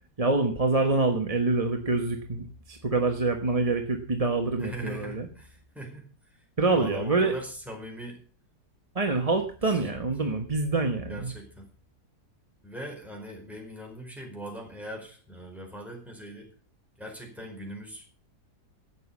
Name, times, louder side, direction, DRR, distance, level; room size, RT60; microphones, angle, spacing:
voice 1, 0.2-5.2 6.6-7.3 8.9-11.3, right 3 dB, 25° right, 4 dB, 1.1 m, -26 dB
voice 2, 4.6-8.2 9.4-9.9 11.1-11.7 12.6-16.5 17.0-18.1, right 1 dB, ahead, 0 dB, 4.8 m, -41 dB
12.5 x 8.3 x 7.2 m, 0.41 s
omnidirectional pair, 1.7 m